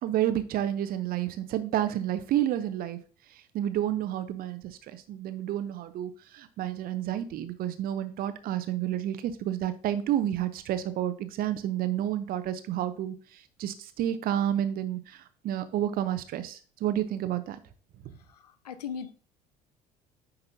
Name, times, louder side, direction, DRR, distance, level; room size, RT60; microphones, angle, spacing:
voice 1, 0.0-3.0 3.5-17.6 18.0-18.1, right 11 dB, 50° right, 12 dB, 0.7 m, -30 dB
voice 2, 18.3-19.1, left 7 dB, 80° left, 13 dB, 0.5 m, -38 dB
9.6 x 4.0 x 2.7 m, 0.40 s
figure-of-eight pair, 55°, 20 cm